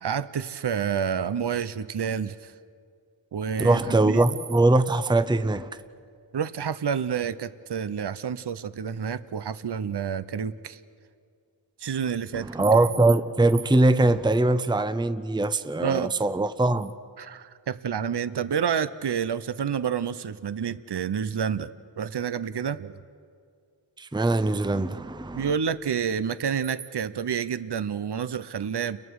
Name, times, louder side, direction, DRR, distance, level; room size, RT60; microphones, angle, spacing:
voice 1, 0.0-2.5 3.3-4.2 6.3-10.8 11.8-12.7 15.8-16.1 17.2-21.7 22.0-23.0 25.3-29.0, right 7 dB, 60° right, 14 dB, 0.7 m, -29 dB
voice 2, 3.6-5.7 12.3-16.9 24.0-25.5, right 2 dB, 10° right, 12 dB, 0.7 m, -22 dB
29.5 x 23.0 x 4.8 m, 2.2 s
wide cardioid pair, 40°, 45 cm